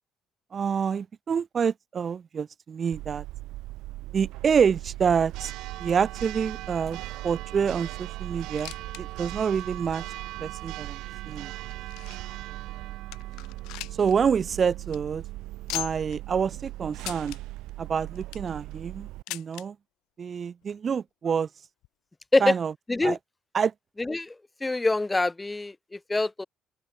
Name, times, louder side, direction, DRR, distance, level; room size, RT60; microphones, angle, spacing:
voice 1, 0.5-3.2 4.1-5.5 5.8-10.0 10.4-11.0 11.3-11.5 14.0-15.2 15.7-17.4 17.8-19.8 20.2-21.5 22.4-22.7 23.0-23.2 23.5-23.7, right 6 dB, 45° right, 4.0 m, -27 dB
Church bell, 2.9-19.2, right 18 dB, 80° right, 4.1 m, -38 dB
sound 1, 8.4-9.0 9.3-9.4 10.1-10.2 10.9-12.4 12.8-12.9 13.1-14.1 14.4-14.5 14.8-15.0 15.7-16.2 17.0-17.4 18.0-18.5 19.3-19.7 20.6-20.7 20.9-21.0 21.8-21.9, left 20 dB, 85° left, 7.2 m, -38 dB
voice 2, 24.6-25.7 26.1-26.4, left 2 dB, 20° left, 3.7 m, -24 dB
open air
supercardioid pair, 65°, 0 cm